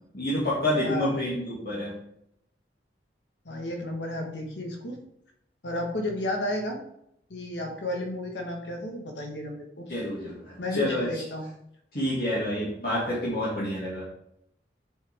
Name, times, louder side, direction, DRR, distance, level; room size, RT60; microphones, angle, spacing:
voice 1, 0.1-2.0 9.9-11.2 11.9-14.1, left 1 dB, 55° left, -8 dB, 2.4 m, -28 dB
voice 2, 3.4-5.0 5.6-6.8 7.3-9.9 10.6-11.5, left 1 dB, 80° left, 2 dB, 1.6 m, -32 dB
7.1 x 6.7 x 3.7 m, 0.76 s
head